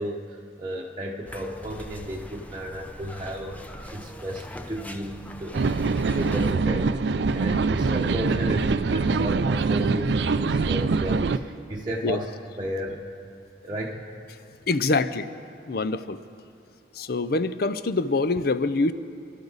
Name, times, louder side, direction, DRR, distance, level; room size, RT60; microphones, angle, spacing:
voice 1, 0.0-12.3 12.6-13.2 13.6-14.0, right 1 dB, 25° right, -4 dB, 0.9 m, -34 dB
sound 1, 1.3-6.5, left 1 dB, 10° left, 0.6 m, -42 dB
sound 2, 5.5-11.4, right 4 dB, 65° right, 0.4 m, -24 dB
voice 2, 14.7-15.3 15.7-16.2 16.9-18.9, left 3 dB, 55° left, 12 dB, 0.6 m, -25 dB
29.0 x 12.0 x 4.1 m, 2.5 s
head